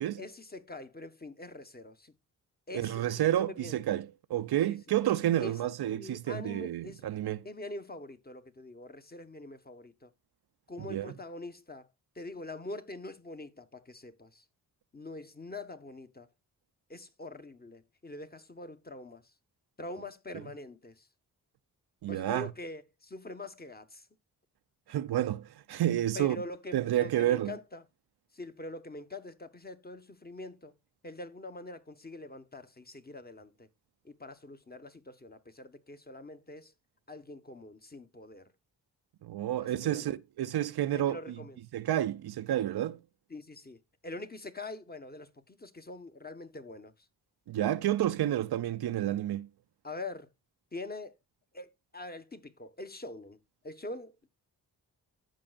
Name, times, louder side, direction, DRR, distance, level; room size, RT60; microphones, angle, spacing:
voice 1, 0.2-2.1 2.7-3.7 4.7-4.8 5.4-5.6 5.8-7.1 7.4-10.1 10.7-11.9 12.1-14.4 14.9-16.3 16.9-19.3 19.8-21.1 22.1-24.1 26.1-27.8 28.3-30.7 31.0-33.7 34.0-36.7 37.1-38.5 39.6-40.1 40.9-41.6 43.3-46.9 49.8-50.3 50.7-51.1 51.5-53.4 53.6-54.3, left 2 dB, 25° left, 1.3 m, -44 dB
voice 2, 2.7-7.5 10.9-11.1 20.3-20.4 22.0-22.5 24.9-26.4 26.7-27.6 39.2-41.4 41.7-43.0 47.5-49.5, right 12 dB, 70° right, 0.6 m, -30 dB
14.0 x 5.6 x 2.4 m
cardioid pair, 45°, 40 cm